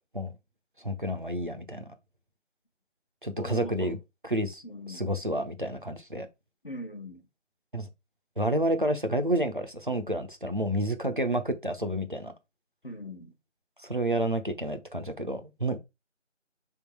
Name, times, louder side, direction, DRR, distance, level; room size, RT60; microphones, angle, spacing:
voice 1, 0.8-1.9 3.2-4.0 4.3-4.6 4.9-6.3 7.7-7.9 8.4-12.3 13.8-15.8, right 1 dB, 45° right, 0.7 m, -29 dB
voice 2, 3.4-4.0 4.6-5.1 6.6-7.3 12.8-13.3, equal, 45° left, 1.2 m, -40 dB
5.7 x 3.7 x 4.6 m
figure-of-eight pair, 175°, 37 cm